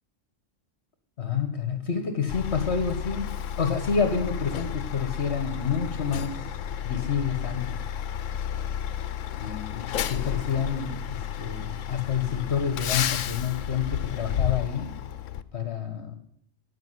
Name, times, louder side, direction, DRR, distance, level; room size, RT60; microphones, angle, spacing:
voice 1, 1.2-6.5 6.8-7.8 9.3-14.9 15.5-16.2, left 6 dB, 60° left, 6 dB, 1.7 m, -29 dB
Truck, 2.3-15.4, left 9 dB, 75° left, 1.0 m, -32 dB
16.5 x 5.8 x 9.6 m, 0.66 s
omnidirectional pair, 1.3 m